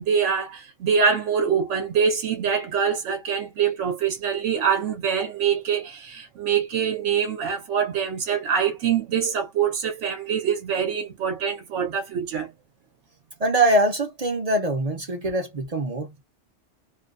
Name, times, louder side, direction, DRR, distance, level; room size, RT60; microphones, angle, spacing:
voice 1, 0.0-12.5, right 7 dB, 85° right, 1.0 m, -24 dB
voice 2, 13.4-16.2, right 1 dB, 40° right, 0.6 m, -23 dB
2.5 x 2.2 x 2.3 m
omnidirectional pair, 1.2 m